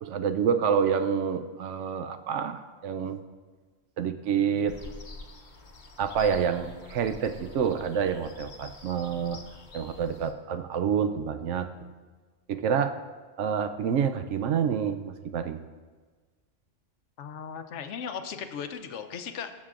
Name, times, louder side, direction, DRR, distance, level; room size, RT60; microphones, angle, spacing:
voice 1, 0.0-3.2 4.0-4.8 6.0-9.4 9.7-11.7 12.5-13.0 13.4-15.6, right 7 dB, 80° right, 9 dB, 0.9 m, -28 dB
sound 1, 4.7-10.3, left 3 dB, 45° left, 0.9 m, -46 dB
voice 2, 17.2-19.5, left 7 dB, 75° left, 8 dB, 1.0 m, -37 dB
18.0 x 7.4 x 2.5 m, 1.4 s
omnidirectional pair, 1.2 m